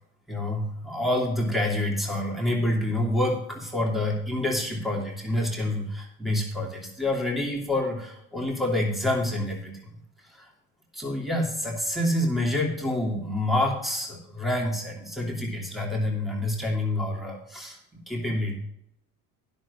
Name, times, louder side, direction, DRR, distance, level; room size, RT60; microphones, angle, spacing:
voice 1, 0.3-9.8 10.2-10.5 10.9-17.8 18.1-18.6, left 1 dB, ahead, 0 dB, 2.9 m, -27 dB
10.5 x 6.6 x 5.4 m, 0.78 s
hypercardioid pair, 70°, 44 cm